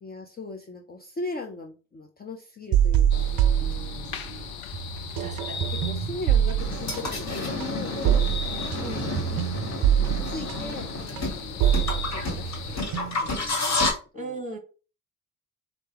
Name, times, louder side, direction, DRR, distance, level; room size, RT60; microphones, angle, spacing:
voice 1, 0.0-4.4 5.4-8.6 9.1-9.2 9.9-14.4, left 3 dB, 20° left, 3 dB, 0.6 m, -40 dB
sound 1, 2.7-4.4 4.7-13.4, right 10 dB, 55° right, 0.5 m, -25 dB
sound 2, 3.1-12.8, left 7 dB, 65° left, 0.6 m, -37 dB
voice 2, 5.2-5.5 8.8-9.2 14.1-14.6, right 3 dB, 20° right, 3 dB, 1.3 m, -37 dB
sound 3, 6.6-13.9, left 2 dB, 40° left, 1.3 m, -31 dB
4.4 x 2.0 x 3.0 m, 0.35 s
hypercardioid pair, 45°, 42 cm